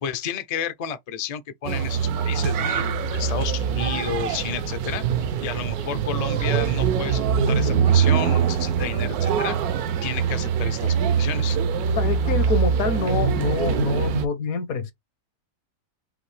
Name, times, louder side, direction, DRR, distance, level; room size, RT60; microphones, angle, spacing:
voice 1, 0.0-5.0 5.4-9.6 10.0-11.6, left 7 dB, 50° left, 0.4 m, -31 dB
sound 1, 1.6-14.3, right 7 dB, 80° right, 1.2 m, -23 dB
voice 2, 12.0-14.9, left 4 dB, 70° left, 1.3 m, -26 dB
5.7 x 2.7 x 3.3 m
omnidirectional pair, 1.6 m